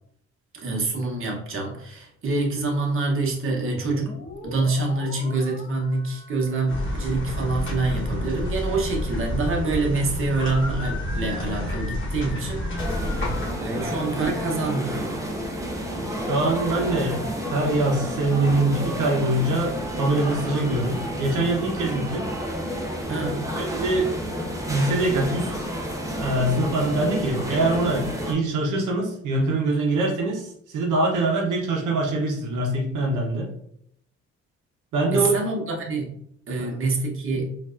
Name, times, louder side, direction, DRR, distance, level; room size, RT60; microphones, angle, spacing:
voice 1, 0.6-4.1 4.4-15.2 23.1-23.5 35.1-36.2 36.5-37.6, right 3 dB, 45° right, -1 dB, 1.0 m, -26 dB
sound 1, 3.7-9.4, left 2 dB, 25° left, 0.6 m, -43 dB
sound 2, 6.7-13.5, left 1 dB, 40° left, 1.2 m, -29 dB
sound 3, 12.8-28.3, equal, 10° right, 0.8 m, -30 dB
voice 2, 16.3-17.2 17.5-22.3 23.6-24.1 24.7-25.6 26.1-33.5 34.9-35.3 36.6-36.7, right 2 dB, 80° right, -1 dB, 0.9 m, -24 dB
4.4 x 2.6 x 2.5 m, 0.71 s
cardioid pair, 90°, 30 cm